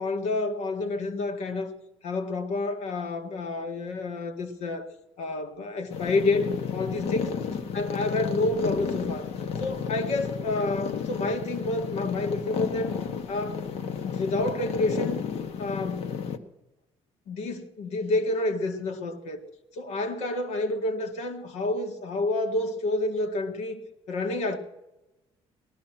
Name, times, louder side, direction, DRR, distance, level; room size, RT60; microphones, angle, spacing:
voice 1, 0.0-1.7 2.0-4.9 5.2-7.3 7.7-9.3 9.6-12.9 13.3-13.6 14.0-15.2 15.6-16.1 17.3-19.4 19.7-23.8 24.1-24.6, left 2 dB, 80° left, 2.0 m, -29 dB
sound 1, 5.9-16.4, left 7 dB, 65° left, 1.2 m, -32 dB
18.0 x 13.5 x 6.0 m
cardioid pair, 175°, 11 cm